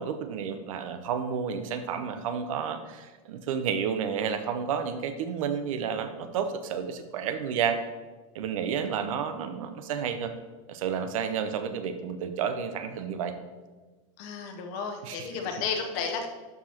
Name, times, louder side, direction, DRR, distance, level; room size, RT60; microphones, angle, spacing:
voice 1, 0.0-7.8 8.3-10.3 10.7-13.3 15.0-15.4, right 7 dB, 75° right, 9 dB, 0.8 m, -31 dB
voice 2, 14.2-16.3, left 5 dB, 40° left, 4 dB, 0.8 m, -32 dB
12.0 x 4.9 x 2.9 m, 1.3 s
supercardioid pair, 170°, 17 cm